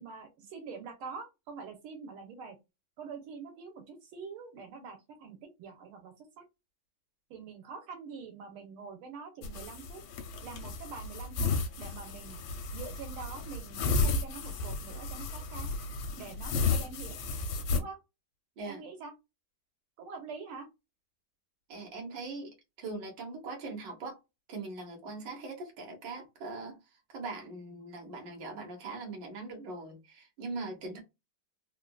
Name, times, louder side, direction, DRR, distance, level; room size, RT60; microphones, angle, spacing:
voice 1, 0.0-2.6 3.0-6.4 7.3-10.0 10.4-12.4 12.7-15.8 16.2-17.2 17.7-18.0 18.6-19.1 20.0-20.7, right 5 dB, 90° right, 1.8 m, -45 dB
sound 1, 9.4-17.8, left 4 dB, 75° left, 1.4 m, -33 dB
voice 2, 21.7-24.2 24.5-26.8 27.1-31.0, right 3 dB, 60° right, 1.7 m, -41 dB
3.8 x 2.5 x 2.3 m
omnidirectional pair, 2.3 m